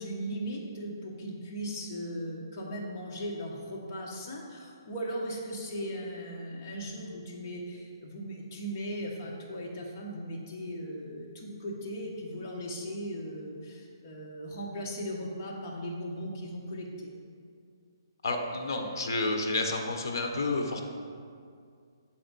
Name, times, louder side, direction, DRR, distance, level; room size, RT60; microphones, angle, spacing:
voice 1, 0.0-17.1, equal, 35° left, -2 dB, 1.0 m, -38 dB
voice 2, 18.2-20.8, left 2 dB, 55° left, 3 dB, 0.9 m, -30 dB
7.5 x 4.5 x 4.0 m, 2.2 s
hypercardioid pair, 160°, 2 cm